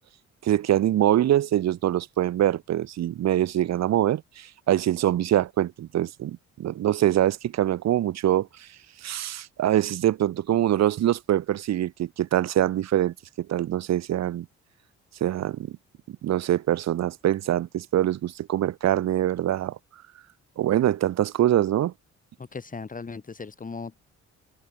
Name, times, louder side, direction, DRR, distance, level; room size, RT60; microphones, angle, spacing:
voice 1, 0.4-8.7 9.0-14.5 15.2-15.8 16.1-19.8 20.6-21.9, right 12 dB, 60° right, 0.9 m, -24 dB
voice 2, 22.4-24.0, left 4 dB, 25° left, 1.6 m, -37 dB
cardioid pair, 90°, 30 cm